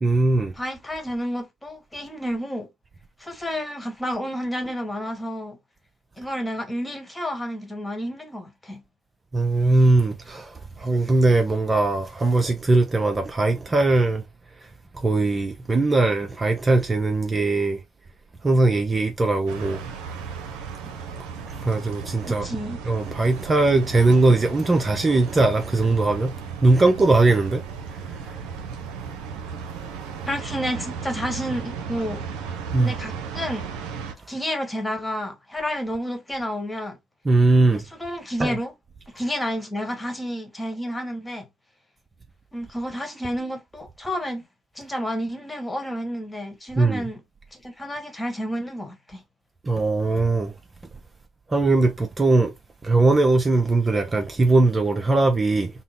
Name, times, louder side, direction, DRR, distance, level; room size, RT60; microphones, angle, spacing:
voice 1, 0.0-0.5 9.3-10.5 10.8-14.2 15.0-17.8 18.4-19.8 21.6-22.5 22.9-26.3 26.6-27.6 32.7-33.0 37.3-37.8 38.4-38.6 46.8-47.0 49.7-50.5 51.5-52.5 52.8-55.7, right 2 dB, 30° right, 0.5 m, -20 dB
voice 2, 0.6-2.7 3.2-5.6 6.2-8.8 22.3-22.8 30.3-32.2 32.8-33.7 34.3-37.0 37.7-38.7 39.1-41.5 42.5-44.4 44.7-47.2 47.5-49.2, equal, 15° left, 1.2 m, -30 dB
sound 1, 19.5-34.1, right 6 dB, 75° right, 0.6 m, -35 dB
3.8 x 2.0 x 3.6 m
hypercardioid pair, 60°, 0 cm